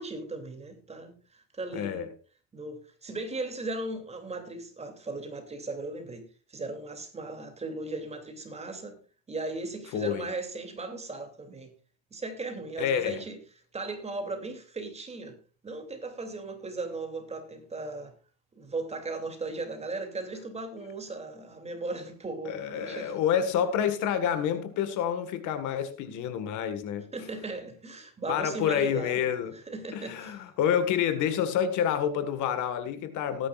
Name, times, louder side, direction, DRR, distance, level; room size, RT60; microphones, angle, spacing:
voice 1, 0.0-2.1 2.5-6.2 6.5-9.0 9.3-11.7 12.1-13.4 13.7-15.4 15.6-18.1 18.6-23.2 27.1-29.2 29.5-30.4, right 3 dB, 20° right, 2.9 m, -37 dB
voice 2, 1.7-2.1 9.9-10.3 12.8-13.2 22.4-27.1 28.3-29.6 29.9-33.5, left 9 dB, 60° left, 1.8 m, -28 dB
19.5 x 10.0 x 2.5 m
supercardioid pair, 120°, 34 cm